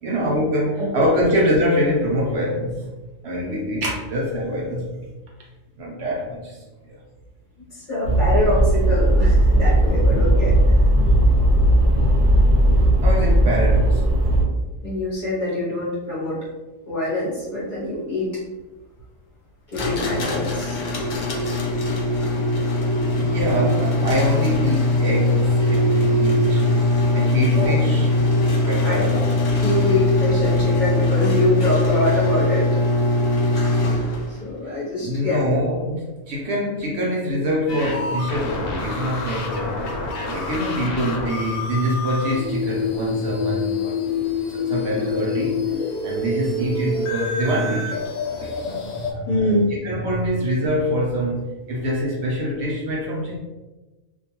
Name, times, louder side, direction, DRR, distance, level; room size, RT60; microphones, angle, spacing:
voice 1, 0.0-2.9 3.2-4.9 5.8-6.6 13.0-14.4 23.2-26.8 27.1-28.1 28.6-29.1 35.0-39.8 40.2-44.0 44.5-45.6 46.0-48.1 48.4-49.6 49.8-53.4, equal, 65° right, -3 dB, 0.8 m, -24 dB
voice 2, 0.8-1.1 7.7-10.8 14.8-16.4 16.9-18.3 19.7-20.8 25.7-25.9 27.5-27.7 28.8-29.2 29.6-32.8 33.3-33.4 34.3-35.4 48.4-48.5 48.9-50.2, left 1 dB, 45° left, -7 dB, 0.8 m, -24 dB
sound 1, 8.0-14.5, right 1 dB, 80° right, 0.4 m, -16 dB
sound 2, 19.7-34.4, left 2 dB, 70° left, 0.4 m, -21 dB
sound 3, 37.7-49.1, left 4 dB, 85° left, 1.0 m, -27 dB
2.5 x 2.2 x 2.8 m, 1.1 s
omnidirectional pair, 1.4 m